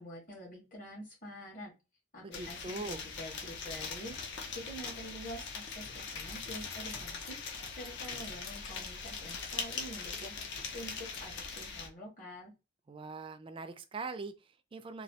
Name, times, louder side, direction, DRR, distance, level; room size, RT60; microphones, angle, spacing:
voice 1, 0.0-1.7 2.1-10.3 10.7-12.5, equal, 40° left, 1.5 m, -47 dB
voice 2, 2.2-3.0 12.9-15.0, right 3 dB, 25° right, 0.3 m, -42 dB
sound 1, 2.3-11.9, left 5 dB, 55° left, 0.6 m, -41 dB
Scissors, 6.2-11.7, left 4 dB, 85° left, 0.8 m, -53 dB
3.1 x 2.3 x 2.8 m
head